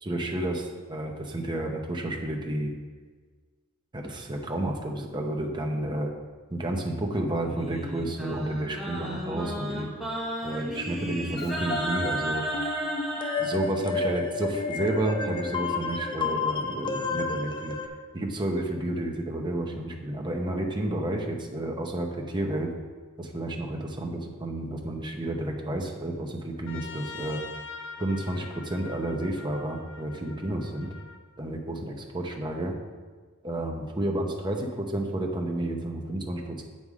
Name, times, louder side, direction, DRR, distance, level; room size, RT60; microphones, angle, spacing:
voice 1, 0.1-0.6 0.9-2.7 3.9-6.1 6.5-10.0 10.4-12.4 13.4-17.8 18.1-22.7 23.2-27.4 28.0-30.9 31.4-32.7 33.4-36.6, right 1 dB, 20° right, 1 dB, 0.8 m, -31 dB
Singing, 7.4-13.4, right 1 dB, ahead, 1.5 m, -33 dB
sound 1, 11.4-17.9, left 4 dB, 20° left, 0.5 m, -31 dB
Trumpet, 26.7-31.2, left 5 dB, 60° left, 0.7 m, -43 dB
7.9 x 5.5 x 4.8 m, 1.5 s
head